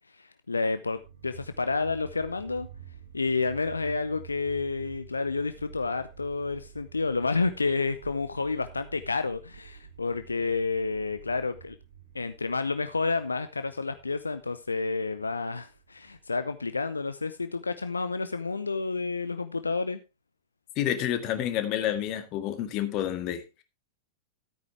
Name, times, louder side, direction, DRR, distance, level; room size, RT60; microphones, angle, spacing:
voice 1, 0.1-2.7 3.1-11.8 12.1-20.0, left 4 dB, 80° left, 11 dB, 0.6 m, -30 dB
sound 1, 0.8-17.9, right 9 dB, 60° right, 6.6 m, -50 dB
voice 2, 20.8-23.6, left 11 dB, 40° left, 8 dB, 1.8 m, -29 dB
13.0 x 9.0 x 3.5 m, 0.26 s
figure-of-eight pair, 90°, 0 cm